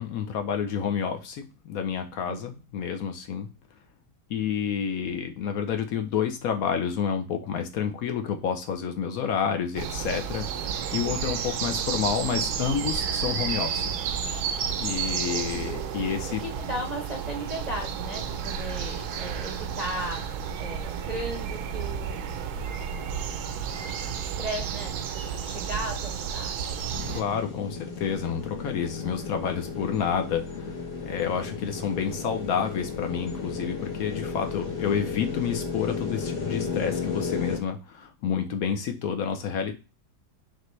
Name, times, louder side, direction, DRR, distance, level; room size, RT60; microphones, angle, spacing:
voice 1, 0.0-3.5 4.3-13.9 14.8-16.4 27.1-39.7, left 7 dB, 70° left, 6 dB, 1.0 m, -29 dB
voice 2, 2.2-2.6 16.4-23.2 24.2-26.7, right 1 dB, 40° right, 0 dB, 0.6 m, -37 dB
sound 1, 9.7-27.2, right 7 dB, 75° right, 1.1 m, -31 dB
sound 2, 26.9-37.6, left 5 dB, 85° left, 1.8 m, -34 dB
4.2 x 3.2 x 3.0 m, 0.28 s
omnidirectional pair, 1.7 m